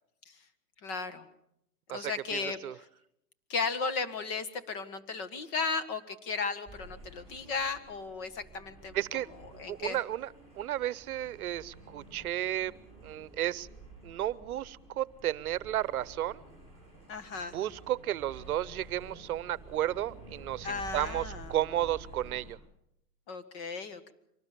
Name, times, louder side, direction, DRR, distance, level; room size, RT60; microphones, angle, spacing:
voice 1, 0.8-1.3 1.9-2.6 3.5-9.0 9.6-10.0 17.1-17.6 20.6-21.5 23.3-24.1, left 4 dB, 35° left, 10 dB, 1.7 m, -35 dB
voice 2, 1.9-2.8 8.9-9.3 9.7-12.7 13.0-13.7 14.0-16.4 17.5-22.6, right 12 dB, 70° right, 19 dB, 0.9 m, -33 dB
sound 1, 6.7-22.5, right 3 dB, 15° left, 7.5 m, -51 dB
24.5 x 18.5 x 6.8 m, 0.80 s
hypercardioid pair, 150°, 46 cm